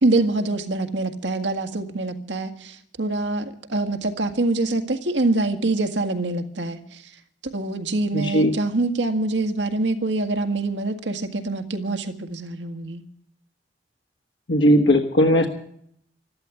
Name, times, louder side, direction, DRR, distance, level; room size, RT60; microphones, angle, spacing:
voice 1, 0.0-7.1 7.4-13.0, right 2 dB, 90° right, 7 dB, 1.8 m, -25 dB
voice 2, 8.1-8.5 14.5-15.5, equal, 85° left, 1 dB, 1.5 m, -17 dB
13.0 x 12.5 x 8.4 m, 0.66 s
head